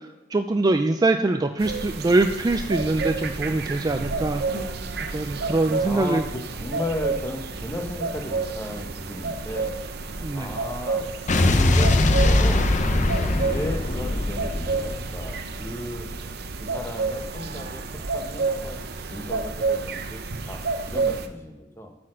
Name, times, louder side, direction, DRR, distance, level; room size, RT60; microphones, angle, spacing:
voice 1, 0.3-4.4 5.1-6.2 10.2-10.5, right 2 dB, 20° right, 7 dB, 0.3 m, -23 dB
sound 1, 1.6-21.3, right 3 dB, 55° right, 0.7 m, -30 dB
voice 2, 5.8-9.8 10.3-11.1 11.4-12.7 13.4-16.1 16.6-20.2 20.5-21.9, left 1 dB, 15° left, 5 dB, 0.9 m, -35 dB
Explosion, 11.3-15.6, left 2 dB, 40° left, 0.6 m, -21 dB
8.2 x 4.4 x 6.2 m, 1.1 s
head